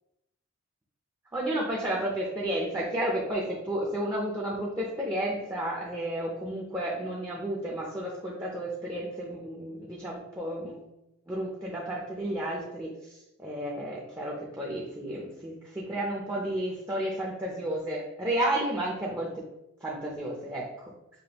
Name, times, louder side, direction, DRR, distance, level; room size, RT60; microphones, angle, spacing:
voice 1, 1.3-10.8 11.3-19.4 19.8-20.9, right 1 dB, 10° right, -3 dB, 0.5 m, -32 dB
5.0 x 2.3 x 2.9 m, 0.90 s
head